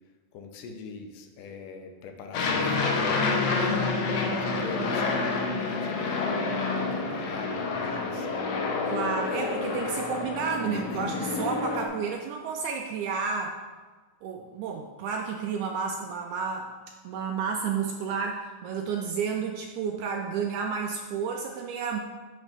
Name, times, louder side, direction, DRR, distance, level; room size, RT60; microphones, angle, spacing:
voice 1, 0.3-3.1 4.2-8.6 10.7-11.1, left 4 dB, 85° left, 4 dB, 2.3 m, -41 dB
Aircraft, 2.3-11.9, left 3 dB, 70° left, 1.7 m, -28 dB
voice 2, 3.5-4.1 8.9-13.6 14.2-16.7 17.0-22.0, right 6 dB, 80° right, 2 dB, 1.9 m, -31 dB
9.9 x 4.0 x 3.4 m, 1.3 s
omnidirectional pair, 3.6 m